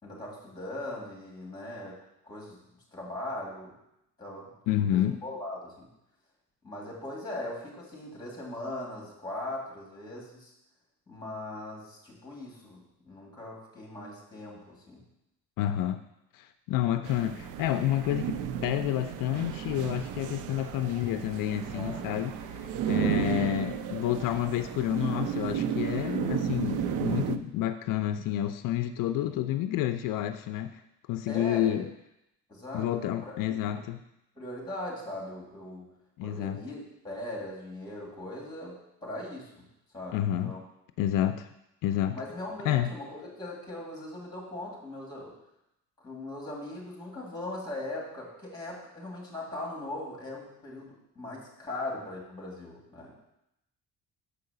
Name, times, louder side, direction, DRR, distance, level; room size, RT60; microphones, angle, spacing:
voice 1, 0.0-2.0 2.2-3.7 4.2-5.9 6.6-10.5 11.1-15.0 21.7-22.1 29.2-29.4 31.3-31.8 32.5-33.3 34.4-35.9 36.2-39.6 39.9-40.2 40.4-40.6 42.1-45.3 46.0-53.2, left 1 dB, 15° left, -3 dB, 2.2 m, -40 dB
voice 2, 4.7-5.2 15.6-16.0 16.3-30.8 31.1-31.9 32.7-34.0 36.2-36.6 40.1-40.5 41.0-41.5 41.8-42.2 42.6-42.9, left 12 dB, 80° left, 9 dB, 0.5 m, -29 dB
sound 1, 17.0-27.4, right 8 dB, 70° right, 0.5 m, -33 dB
6.7 x 4.7 x 6.7 m, 0.84 s
cardioid pair, 175°, 32 cm